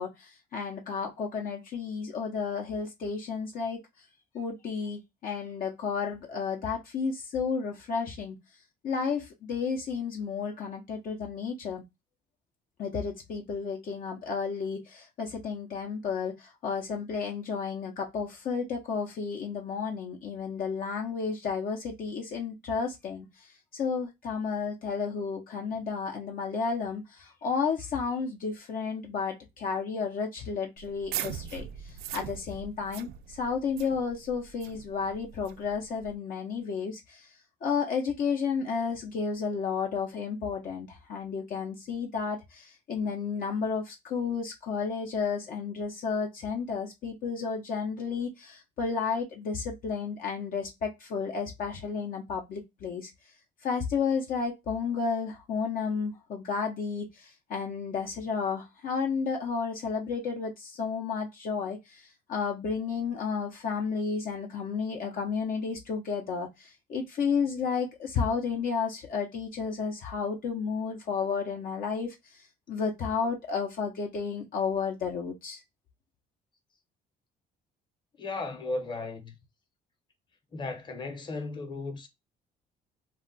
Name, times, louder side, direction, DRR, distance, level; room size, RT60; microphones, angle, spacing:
voice 1, 0.0-3.8 4.3-8.4 8.8-11.8 12.8-23.3 23.7-37.3 37.6-53.1 53.6-75.6, left 5 dB, 55° left, 0.7 m, -32 dB
sound 1, 30.8-36.1, right 10 dB, 70° right, 0.4 m, -41 dB
voice 2, 78.2-79.3 80.5-82.1, left 3 dB, 25° left, 0.9 m, -35 dB
2.3 x 2.2 x 3.8 m
cardioid pair, 110°, 17 cm